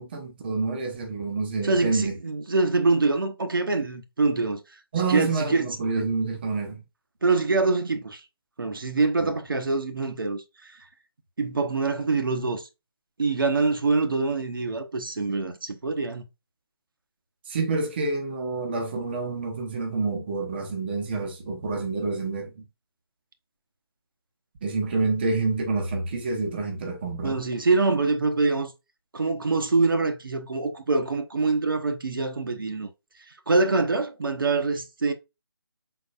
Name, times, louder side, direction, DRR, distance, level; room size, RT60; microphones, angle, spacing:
voice 1, 0.0-2.2 4.9-6.8 9.2-9.3 17.4-22.6 24.6-27.4, right 3 dB, 25° right, 0.7 m, -28 dB
voice 2, 1.6-4.6 5.1-5.7 7.2-8.2 8.6-10.8 11.4-12.7 13.2-16.2 27.2-28.7 29.1-32.9 33.5-35.1, right 3 dB, 60° right, 0.9 m, -25 dB
4.8 x 3.9 x 2.5 m
figure-of-eight pair, 150°, 13 cm